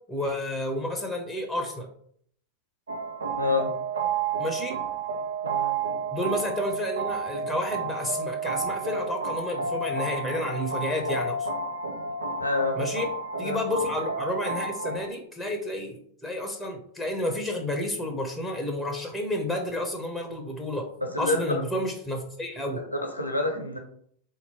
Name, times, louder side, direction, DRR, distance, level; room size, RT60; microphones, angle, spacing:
voice 1, 0.1-1.9 4.4-4.8 6.1-11.5 12.8-13.1 13.4-20.9 21.2-22.8, left 1 dB, 5° left, 3 dB, 0.8 m, -30 dB
sound 1, 2.9-15.0, right 4 dB, 70° right, 0.6 m, -31 dB
voice 2, 3.4-3.7 5.4-5.8 12.4-12.9 13.4-13.6 21.0-21.6 22.7-23.8, left 3 dB, 85° left, 3 dB, 0.9 m, -28 dB
3.8 x 2.9 x 4.3 m, 0.64 s
figure-of-eight pair, 90°, 0 cm